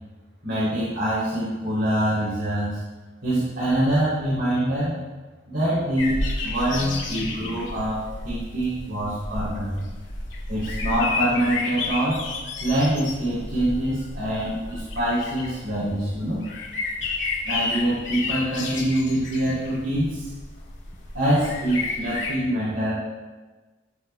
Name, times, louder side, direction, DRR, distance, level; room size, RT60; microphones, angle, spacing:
voice 1, 0.4-2.8 3.2-5.0 5.5-6.2 6.4-8.0 8.2-9.8 10.5-12.2 12.6-16.4 17.4-20.3 21.1-22.9, right 1 dB, 65° right, -11 dB, 3.6 m, -24 dB
sound 1, 6.0-22.3, left 3 dB, 70° left, 2.5 m, -32 dB
18.0 x 7.8 x 2.4 m, 1.3 s
head